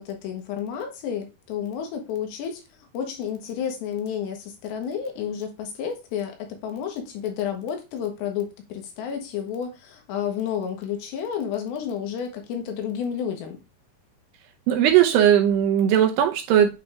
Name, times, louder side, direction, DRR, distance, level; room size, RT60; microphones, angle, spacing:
voice 1, 0.0-2.6 2.9-13.6, left 8 dB, 80° left, 3.3 m, -31 dB
voice 2, 14.7-16.8, right 10 dB, 80° right, 2.5 m, -18 dB
8.6 x 3.3 x 3.4 m
omnidirectional pair, 5.0 m